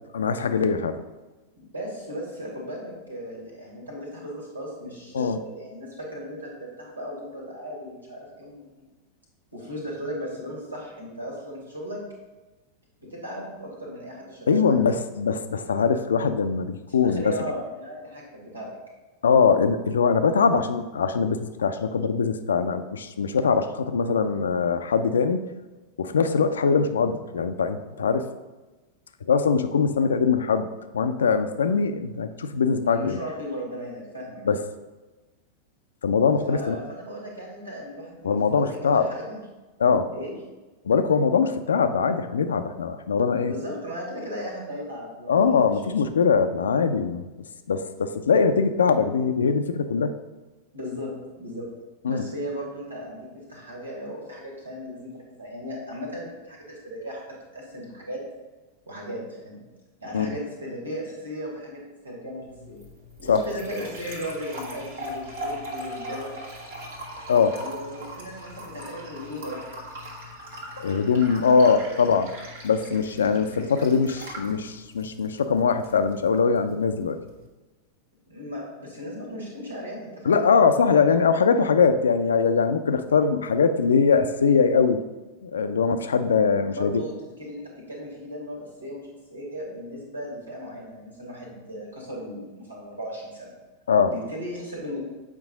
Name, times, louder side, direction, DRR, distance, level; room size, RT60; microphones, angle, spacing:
voice 1, 0.1-1.0 5.1-5.4 14.5-17.3 19.2-25.4 26.0-28.3 29.3-30.7 30.9-33.2 34.4-34.6 36.0-36.7 38.2-39.1 39.8-40.1 40.8-43.5 45.3-47.3 47.7-50.1 52.0-52.3 60.1-60.3 63.3-63.5 67.3-67.6 70.8-72.3 72.6-77.2 80.3-85.0 85.4-87.0 93.9-94.1, left 5 dB, 70° left, 9 dB, 0.5 m, -22 dB
voice 2, 1.6-8.7 9.5-12.0 13.0-14.8 16.9-18.7 32.8-34.4 36.5-39.4 40.1-40.3 43.5-46.2 50.7-51.7 52.1-57.2 57.5-58.2 58.9-59.6 60.0-62.8 63.2-66.3 67.6-69.7 71.5-72.1 78.3-80.4 86.7-87.1 87.4-93.5 94.1-95.0, equal, 80° right, -3 dB, 2.1 m, -36 dB
sound 1, 62.5-77.5, equal, 55° right, 1.4 m, -40 dB
7.4 x 4.7 x 3.9 m, 1.2 s
figure-of-eight pair, 90°, 0 cm